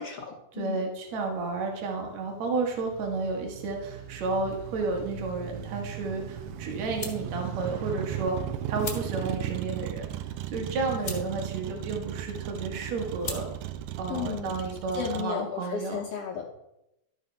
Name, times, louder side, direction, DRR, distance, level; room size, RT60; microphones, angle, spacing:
voice 1, 0.0-0.8 14.1-14.5 15.0-16.5, left 7 dB, 60° left, -1 dB, 1.8 m, -34 dB
voice 2, 0.5-8.4 8.7-10.0 10.5-13.5 14.0-16.0, right 3 dB, 65° right, 2 dB, 2.8 m, -32 dB
Motor vehicle (road), 1.2-15.2, right 12 dB, 85° right, 2.1 m, -37 dB
sound 1, 4.4-14.7, left 3 dB, 30° left, 1.7 m, -44 dB
12.5 x 5.5 x 5.4 m, 0.86 s
omnidirectional pair, 3.4 m